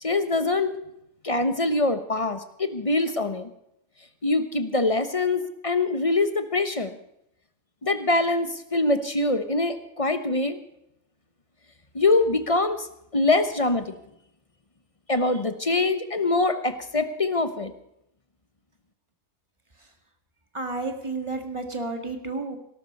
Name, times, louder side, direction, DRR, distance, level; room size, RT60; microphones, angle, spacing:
voice 1, 0.0-0.7 1.2-3.5 4.2-7.0 7.8-10.6 11.9-12.9 13.1-13.9 15.1-17.7, left 2 dB, 30° left, 10 dB, 1.0 m, -24 dB
voice 2, 20.5-22.6, right 3 dB, 25° right, 5 dB, 1.9 m, -31 dB
18.0 x 12.0 x 5.4 m, 0.78 s
omnidirectional pair, 1.4 m